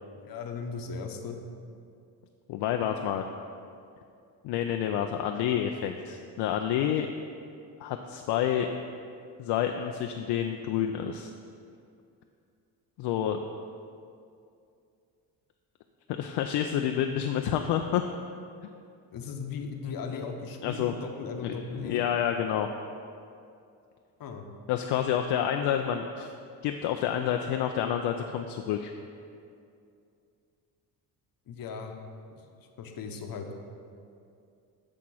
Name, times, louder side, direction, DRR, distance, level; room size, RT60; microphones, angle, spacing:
voice 1, 0.3-1.4 19.1-22.1 24.2-24.5 31.5-31.9 32.6-33.5, left 5 dB, 50° left, 4 dB, 0.9 m, -37 dB
voice 2, 2.5-3.3 4.4-7.1 7.8-8.7 9.4-11.3 13.0-13.4 16.2-18.0 19.8-20.2 20.6-21.0 21.4-22.7 24.7-26.3 26.6-28.9, left 9 dB, 70° left, 5 dB, 0.5 m, -29 dB
8.4 x 2.9 x 6.3 m, 2.5 s
supercardioid pair, 75°, 43 cm